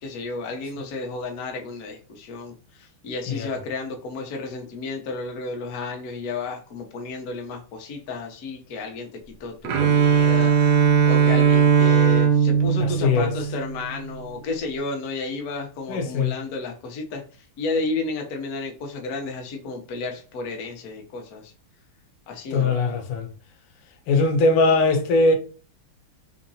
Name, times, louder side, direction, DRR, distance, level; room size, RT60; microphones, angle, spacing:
voice 1, 0.0-9.1 9.4-17.2 17.6-21.5 22.3-22.7, left 3 dB, 60° left, 0.9 m, -32 dB
Bowed string instrument, 9.6-13.7, right 7 dB, 85° right, 0.9 m, -18 dB
voice 2, 12.8-13.3 15.9-16.3 22.5-23.3 24.1-25.4, left 3 dB, 90° left, 1.7 m, -20 dB
3.8 x 2.8 x 2.7 m
omnidirectional pair, 2.4 m